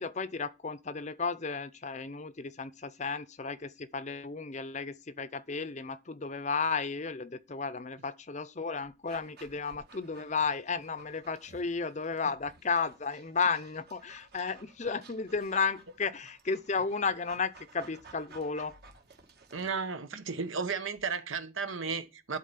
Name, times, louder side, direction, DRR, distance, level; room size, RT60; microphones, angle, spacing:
voice 1, 0.0-18.8, left 5 dB, 35° left, 0.6 m, -33 dB
Dog, 9.1-19.8, right 4 dB, 50° right, 1.5 m, -56 dB
voice 2, 19.5-22.4, right 5 dB, 80° right, 1.0 m, -34 dB
11.0 x 4.1 x 5.7 m
head